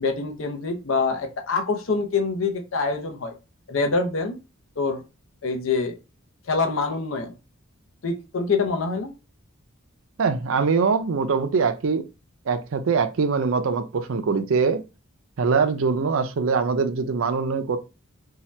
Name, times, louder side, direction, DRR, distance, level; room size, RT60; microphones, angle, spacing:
voice 1, 0.0-3.3 3.7-4.4 4.8-5.0 5.4-6.0 6.5-7.3 8.0-9.1, left 4 dB, 70° left, 0.7 m, -25 dB
voice 2, 10.2-12.0 12.5-14.8 15.4-17.8, right 5 dB, 75° right, 0.5 m, -23 dB
2.8 x 2.3 x 3.1 m
head